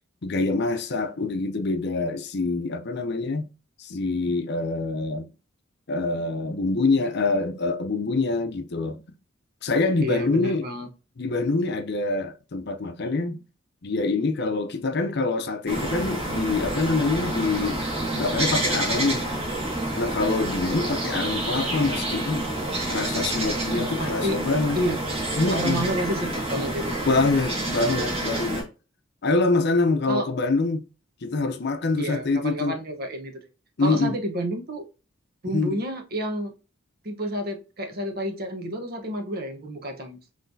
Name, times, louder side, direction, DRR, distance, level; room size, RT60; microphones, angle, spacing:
voice 1, 0.2-3.5 3.8-5.3 5.9-9.0 9.6-10.7 11.2-13.4 13.8-17.8 18.1-19.3 20.0-22.5 22.9-24.8 25.4-25.9 27.0-28.7 29.2-30.8 31.2-32.7 33.8-34.1 35.5-35.8, left 3 dB, 55° left, 0.6 m, -25 dB
voice 2, 10.0-10.9 23.7-24.4 24.7-25.0 25.5-27.0 30.1-30.2 32.0-33.3 33.8-34.9 35.4-36.5 37.0-40.2, right 1 dB, 45° right, 1.0 m, -30 dB
sound 1, 15.7-28.6, right 1 dB, 30° right, 1.8 m, -28 dB
5.8 x 3.2 x 2.7 m
head